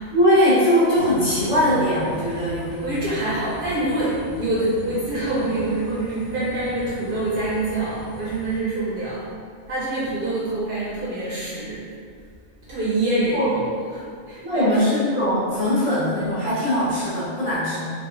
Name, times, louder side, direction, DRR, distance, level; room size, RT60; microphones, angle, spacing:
voice 1, 0.1-2.9 13.3-13.5 14.4-17.8, equal, 35° left, -12 dB, 0.6 m, -20 dB
sound 1, 0.9-8.6, right 1 dB, 60° left, 1.2 m, -38 dB
voice 2, 2.8-9.2 9.7-11.9 12.6-13.6 13.9-14.9, right 2 dB, 60° right, -8 dB, 0.6 m, -26 dB
2.7 x 2.2 x 2.5 m, 2.1 s
omnidirectional pair, 1.2 m